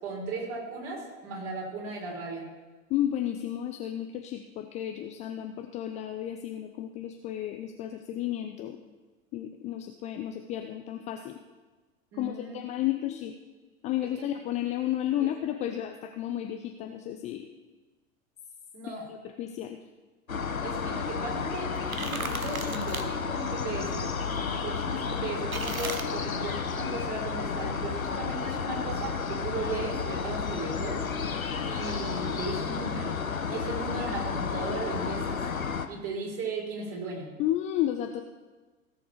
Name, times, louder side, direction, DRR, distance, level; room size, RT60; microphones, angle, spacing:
voice 1, 0.0-2.4 12.1-12.6 13.0-13.1 14.0-14.1 15.2-15.3 18.7-19.1 20.6-31.0 31.6-33.1 33.5-35.4 35.9-37.3, right 3 dB, 40° right, -2 dB, 4.2 m, -36 dB
voice 2, 2.9-8.8 9.3-11.4 12.2-13.3 13.8-17.4 19.4-19.8 37.4-38.2, left 12 dB, 20° left, 5 dB, 0.4 m, -32 dB
sound 1, 20.3-35.9, left 5 dB, 85° left, 0.9 m, -32 dB
sound 2, 21.8-23.0 25.5-26.0, right 3 dB, 85° right, 1.0 m, -35 dB
16.5 x 7.0 x 4.9 m, 1.3 s
figure-of-eight pair, 90°, 40 cm